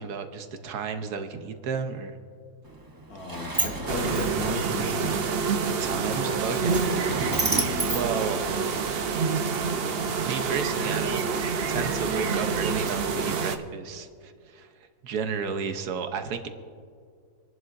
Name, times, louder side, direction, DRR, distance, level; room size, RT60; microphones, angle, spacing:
voice 1, 0.0-2.2 5.8-7.1 7.9-8.7 10.2-11.2 11.7-14.7 15.0-16.5, right 6 dB, 75° right, 8 dB, 1.3 m, -32 dB
Sliding door, 2.6-9.0, right 2 dB, 20° right, 0.7 m, -33 dB
voice 2, 3.1-5.3 5.6-6.4 7.0-7.2, left 2 dB, 65° left, -1 dB, 2.3 m, -35 dB
sound 1, 3.9-13.6, right 5 dB, 55° right, 0.7 m, -27 dB
27.5 x 11.0 x 2.5 m, 2.1 s
omnidirectional pair, 1.7 m